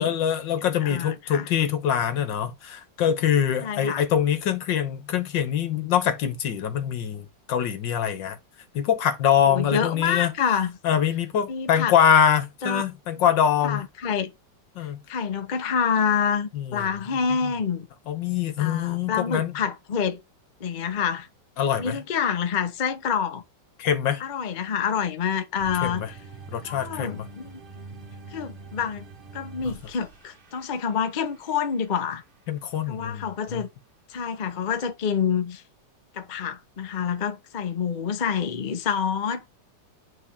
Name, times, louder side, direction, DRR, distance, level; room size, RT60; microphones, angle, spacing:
voice 1, 0.0-8.4 8.8-10.3 10.8-13.8 14.8-15.0 16.5-16.8 17.4-17.5 18.1-19.5 21.6-22.0 23.8-24.2 25.8-26.1 26.5-27.3 32.5-33.6, left 8 dB, 75° left, 1.8 m, -24 dB
voice 2, 0.8-1.5 3.6-4.0 9.4-10.7 11.5-11.9 12.6-12.8 13.6-14.3 15.1-17.9 18.6-20.2 20.6-21.3 21.8-23.4 24.2-26.1 26.6-27.6 28.3-29.0 29.3-32.2 32.9-33.7 34.1-35.6 36.1-39.6, left 7 dB, 50° left, 0.5 m, -27 dB
sound 1, 25.6-31.9, right 3 dB, 35° right, 1.0 m, -44 dB
9.7 x 3.4 x 3.4 m
omnidirectional pair, 2.0 m